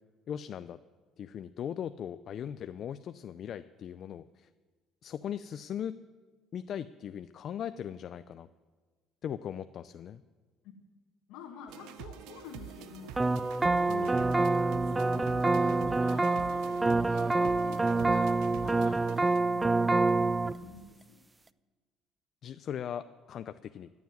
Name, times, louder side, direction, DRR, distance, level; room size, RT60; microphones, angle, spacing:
voice 1, 0.3-0.8 1.2-4.5 5.0-6.0 6.5-8.5 9.2-10.2 13.9-14.4 22.4-23.9, left 9 dB, 55° left, 12 dB, 0.4 m, -39 dB
voice 2, 11.3-13.3 13.7-19.1 19.4-21.2, left 7 dB, 85° left, -1 dB, 1.6 m, -49 dB
sound 1, 11.7-19.4, right 11 dB, 85° right, 0.6 m, -47 dB
sound 2, 13.2-20.5, right 3 dB, 15° right, 0.4 m, -26 dB
15.0 x 7.2 x 9.4 m, 1.4 s
cardioid pair, 100°, 0 cm